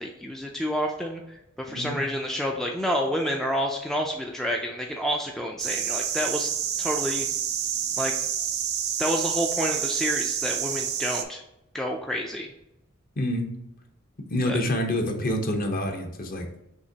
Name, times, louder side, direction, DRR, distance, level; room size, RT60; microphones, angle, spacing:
voice 1, 0.0-6.5 6.8-7.3 8.0-8.1 9.0-11.4 11.7-12.5 14.4-14.6, equal, ahead, 0 dB, 0.3 m, -29 dB
voice 2, 1.7-2.0 13.2-13.5 14.3-16.5, left 1 dB, 45° left, 4 dB, 0.8 m, -27 dB
sound 1, 5.6-11.2, right 9 dB, 50° right, 0.5 m, -28 dB
6.3 x 2.9 x 2.8 m, 0.86 s
head